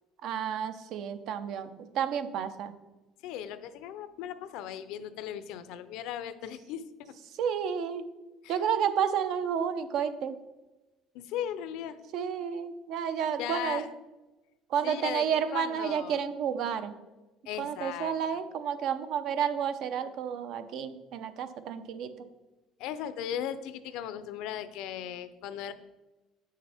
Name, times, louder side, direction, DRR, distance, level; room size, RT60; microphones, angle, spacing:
voice 1, 0.2-1.7 1.9-2.7 7.4-8.0 8.5-10.3 12.1-13.8 14.7-16.9 17.6-22.1, right 8 dB, 60° right, 11 dB, 0.6 m, -31 dB
voice 2, 3.2-7.1 8.4-8.6 11.1-12.0 13.4-13.9 14.8-16.2 17.5-18.4 22.8-25.7, left 10 dB, 75° left, 13 dB, 0.5 m, -37 dB
8.8 x 6.6 x 3.5 m, 1.1 s
cardioid pair, 130°, 0 cm